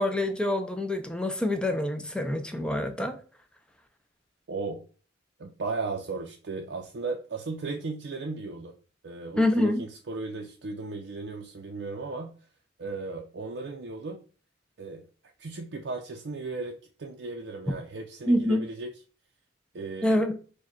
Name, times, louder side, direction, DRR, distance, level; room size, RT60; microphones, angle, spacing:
voice 1, 0.0-3.2 9.4-9.8 18.3-18.6 20.0-20.3, left 1 dB, 5° left, 6 dB, 0.4 m, -26 dB
voice 2, 4.5-4.8 5.4-8.7 9.0-12.3 12.8-14.2 14.8-15.0 15.4-18.9 19.7-20.2, right 3 dB, 65° right, 1 dB, 0.5 m, -36 dB
4.5 x 2.2 x 4.4 m, 0.40 s
head